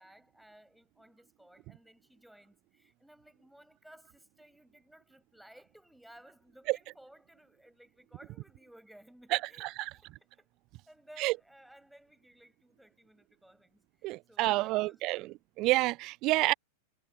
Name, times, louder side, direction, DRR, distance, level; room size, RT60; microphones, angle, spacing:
voice 1, 0.0-9.7 9.9-10.5 10.9-15.4, right 1 dB, ahead, 7.8 m, -58 dB
voice 2, 9.3-9.9 11.2-11.3 14.0-16.5, right 20 dB, 40° right, 0.5 m, -29 dB
figure-of-eight pair, 90°, 0 cm